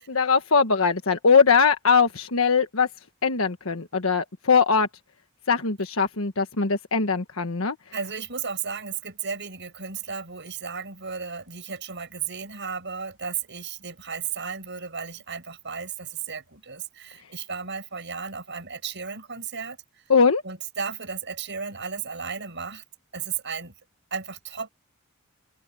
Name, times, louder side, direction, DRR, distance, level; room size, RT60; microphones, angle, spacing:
voice 1, 0.0-2.9 3.2-4.9 5.5-7.8 20.1-20.4, left 5 dB, 85° left, 1.4 m, -21 dB
voice 2, 7.9-19.8 20.4-22.8 23.1-23.7 24.1-24.7, right 6 dB, 60° right, 7.3 m, -34 dB
open air
head